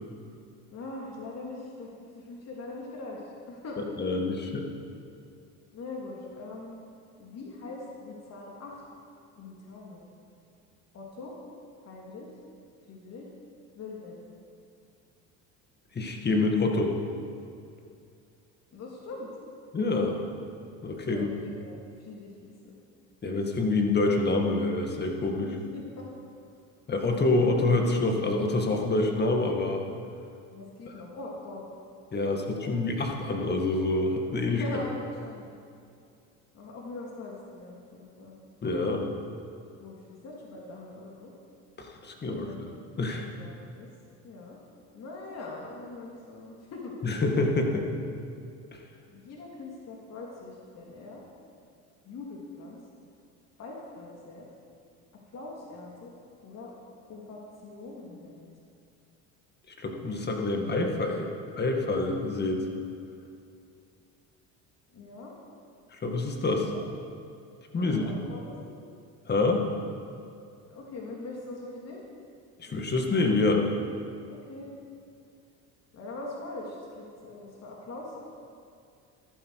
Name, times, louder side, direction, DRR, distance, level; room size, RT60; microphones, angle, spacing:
voice 1, 0.7-3.8 5.7-6.8 7.2-8.9 9.4-10.1 10.9-11.3 11.8-12.3 12.9-13.3 13.7-14.2 18.7-19.3 21.1-22.8 25.4-26.1 30.5-31.6 32.2-32.8 34.4-35.5 36.5-38.4 39.8-41.3 42.3-42.6 43.4-43.9 44.2-44.6 44.9-46.9 49.1-51.2 52.0-52.8 53.6-54.5 55.3-56.1 56.4-56.7 57.1-58.5 64.9-65.3 66.7-66.8 67.8-68.7 70.7-72.0 74.3-74.7 75.9-78.2, left 2 dB, 45° left, -2 dB, 2.6 m, -42 dB
voice 2, 4.0-4.7 15.9-16.9 19.7-20.3 20.8-21.3 23.2-25.5 26.9-29.9 32.1-34.6 38.6-39.1 41.8-42.6 43.0-43.3 47.0-47.9 48.7-48.8 59.8-61.3 61.5-62.6 66.0-66.7 67.7-68.0 69.3-69.7 72.6-73.6, left 2 dB, 30° left, 2 dB, 1.9 m, -26 dB
14.0 x 12.0 x 4.8 m, 2.4 s
supercardioid pair, 100°, 35 cm